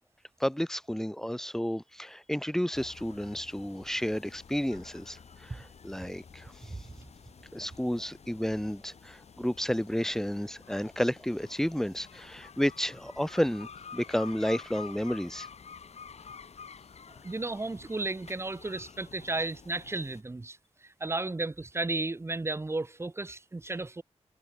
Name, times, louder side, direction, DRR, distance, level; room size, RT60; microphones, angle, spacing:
voice 1, 0.4-6.5 7.5-15.5, equal, 5° left, 6.0 m, -31 dB
sound 1, 2.7-20.2, left 6 dB, 75° left, 4.9 m, -50 dB
voice 2, 17.2-20.6 21.0-24.0, right 2 dB, 25° right, 2.0 m, -33 dB
wide cardioid pair, 150°, 11 cm